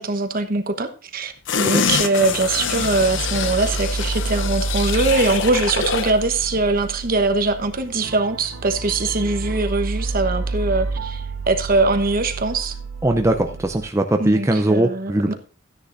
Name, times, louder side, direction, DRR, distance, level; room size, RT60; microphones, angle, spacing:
voice 1, 0.0-12.7 14.2-15.3, right 3 dB, 45° right, 7 dB, 1.1 m, -22 dB
sound 1, 1.5-6.2 6.6-6.7, left 7 dB, 65° left, 0.7 m, -25 dB
sound 2, 2.2-13.9, right 3 dB, 75° right, 0.6 m, -29 dB
voice 2, 13.0-15.3, right 1 dB, 15° right, 4 dB, 0.5 m, -20 dB
14.0 x 9.8 x 2.6 m, 0.37 s
head